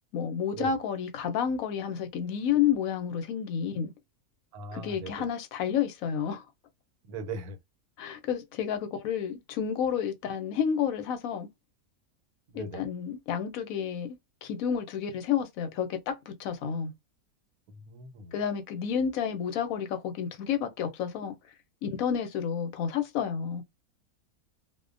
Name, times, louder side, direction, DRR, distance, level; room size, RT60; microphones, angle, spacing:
voice 1, 0.1-3.9 4.7-6.4 8.0-11.5 12.5-16.9 18.3-21.3 21.8-23.6, left 8 dB, 75° left, 1.0 m, -30 dB
voice 2, 4.5-5.3 7.1-7.6 12.5-12.8 17.9-18.3, right 3 dB, 80° right, 1.1 m, -39 dB
2.4 x 2.1 x 2.4 m
omnidirectional pair, 1.5 m